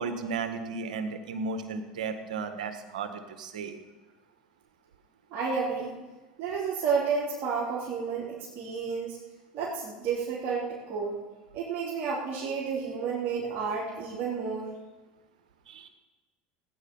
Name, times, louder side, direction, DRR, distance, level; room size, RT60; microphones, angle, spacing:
voice 1, 0.0-3.8 15.7-15.9, right 4 dB, 85° right, 8 dB, 1.4 m, -34 dB
voice 2, 5.3-5.9 6.4-9.2 9.5-11.2 11.5-14.7, right 5 dB, 50° right, -8 dB, 3.8 m, -31 dB
16.5 x 9.7 x 5.5 m, 1.2 s
hypercardioid pair, 85°, 4 cm